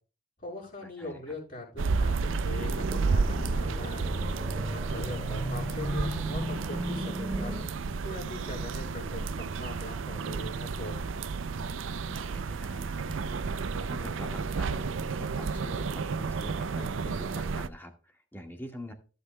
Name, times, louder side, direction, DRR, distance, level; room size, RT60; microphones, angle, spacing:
voice 1, 0.4-4.2 4.7-7.5 8.0-11.1, left 1 dB, 45° left, -2 dB, 6.2 m, -41 dB
voice 2, 1.0-1.3 12.0-18.9, equal, 10° left, 3 dB, 1.7 m, -45 dB
sound 1, 1.8-17.7, right 4 dB, 85° right, 0.5 m, -32 dB
sound 2, 2.6-7.6, equal, 5° right, 2.2 m, -35 dB
15.0 x 8.2 x 2.3 m, 0.35 s
head